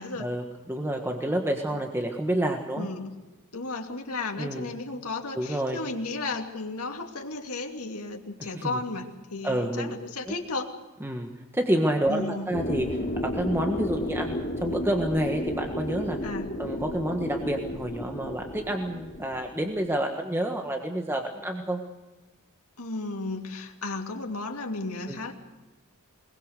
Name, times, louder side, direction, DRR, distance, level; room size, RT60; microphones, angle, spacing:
voice 1, 0.2-2.9 4.4-4.7 5.3-5.8 8.4-8.8 9.4-9.9 10.3-10.4 11.0-16.2 16.6-21.8 25.1-25.2, right 1 dB, 10° right, 3 dB, 1.5 m, -29 dB
voice 2, 2.8-3.1 3.5-10.8 12.1-12.5 16.2-16.5 22.8-25.3, left 3 dB, 80° left, 3 dB, 2.7 m, -34 dB
sound 1, 12.5-19.9, left 1 dB, 45° left, 2.9 m, -33 dB
21.5 x 21.5 x 6.7 m, 1.1 s
head